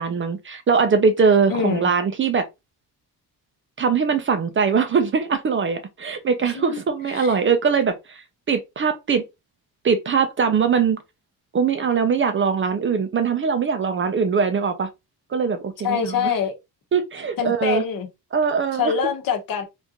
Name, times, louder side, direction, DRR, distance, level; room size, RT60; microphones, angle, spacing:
voice 1, 0.0-2.5 3.8-9.2 9.8-11.0 11.5-14.9 15.3-16.3 16.9-17.8 18.3-18.9, right 5 dB, 35° right, 0.4 m, -21 dB
voice 2, 1.5-1.9 6.5-6.8 7.1-7.4 15.8-16.6 17.4-18.1 18.8-19.7, left 6 dB, 60° left, 0.9 m, -24 dB
3.6 x 2.5 x 2.7 m
cardioid pair, 145°, 38 cm